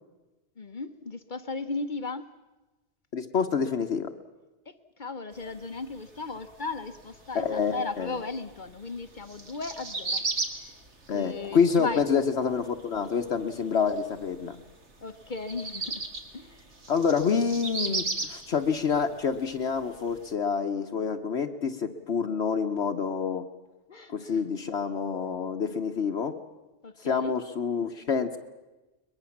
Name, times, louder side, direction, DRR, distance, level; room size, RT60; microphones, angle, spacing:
voice 1, 0.6-2.3 4.7-4.8 5.0-10.3 10.5-10.7 11.1-12.1 15.0-16.0 16.3-16.7 23.9-24.4 26.8-27.3, left 3 dB, 45° left, 10 dB, 0.9 m, -36 dB
voice 2, 3.1-4.1 7.3-8.1 11.1-14.6 16.9-23.4 24.1-26.3 27.0-28.4, left 6 dB, 60° left, 5 dB, 1.2 m, -27 dB
sound 1, 5.3-20.3, right 3 dB, 60° right, 2.4 m, -37 dB
22.5 x 21.5 x 7.2 m, 1.1 s
omnidirectional pair, 1.3 m